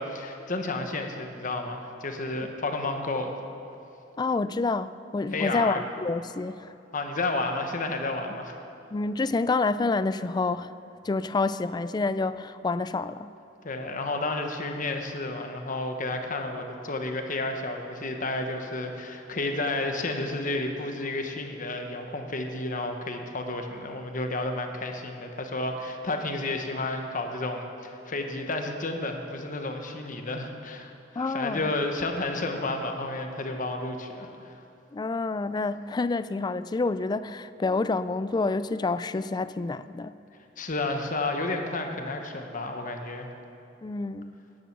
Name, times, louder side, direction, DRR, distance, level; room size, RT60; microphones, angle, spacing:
voice 1, 0.0-3.3 5.3-5.8 6.9-8.5 13.6-34.6 40.6-43.3, left 2 dB, 45° left, 4 dB, 1.2 m, -31 dB
voice 2, 4.2-6.7 8.9-10.7 11.0-13.3 31.2-31.7 34.9-40.1 43.8-44.3, left 3 dB, 20° left, 14 dB, 0.3 m, -28 dB
13.5 x 10.5 x 6.0 m, 2.8 s
head